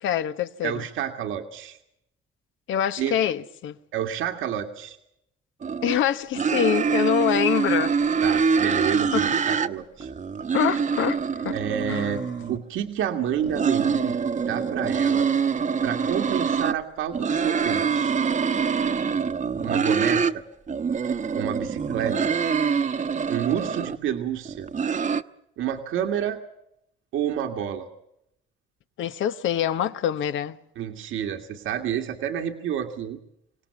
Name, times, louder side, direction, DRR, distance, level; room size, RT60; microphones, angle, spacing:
voice 1, 0.0-0.8 2.7-3.7 5.8-7.9 9.1-9.3 10.5-11.6 11.9-12.2 29.0-30.6, left 9 dB, 80° left, 1.2 m, -25 dB
voice 2, 0.6-1.8 3.0-3.2 3.9-5.0 8.2-10.1 11.5-12.2 12.5-14.2 14.5-15.3 15.8-18.2 19.6-20.4 21.4-22.2 23.3-24.7 25.6-26.4 27.1-27.9 30.8-33.2, right 9 dB, 85° right, 2.0 m, -29 dB
sound 1, 5.6-6.0 6.4-9.7 10.0-12.6 13.3-16.8 17.1-20.3 20.7-24.0 24.5-25.2, right 6 dB, 40° right, 1.0 m, -25 dB
26.5 x 18.0 x 7.0 m
cardioid pair, 90°, 20 cm